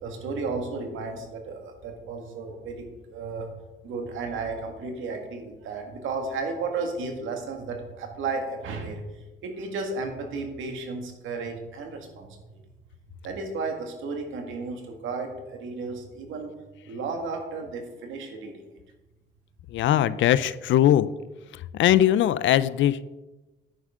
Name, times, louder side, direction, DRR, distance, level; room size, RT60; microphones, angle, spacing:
voice 1, 0.0-3.5 3.8-9.0 9.4-12.3 13.2-16.5 16.9-18.8, right 4 dB, 80° right, 3 dB, 2.0 m, -33 dB
voice 2, 19.7-21.1 21.7-23.0, left 12 dB, 70° left, 16 dB, 0.5 m, -20 dB
9.9 x 9.7 x 3.8 m, 1.1 s
cardioid pair, 90°, 20 cm